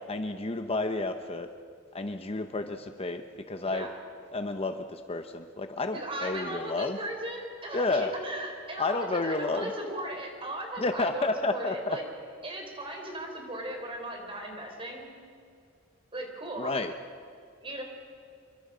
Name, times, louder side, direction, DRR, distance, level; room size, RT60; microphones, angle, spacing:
voice 1, 0.1-1.5 1.9-3.9 4.3-7.0 7.7-8.1 8.8-9.7 10.8-12.0 16.6-16.9, left 2 dB, 30° left, 7 dB, 0.9 m, -31 dB
voice 2, 3.6-3.9 5.9-12.0 12.4-15.1 16.1-16.8 17.6-17.8, right 1 dB, 25° right, 2 dB, 4.4 m, -37 dB
28.0 x 23.5 x 5.1 m, 2.3 s
head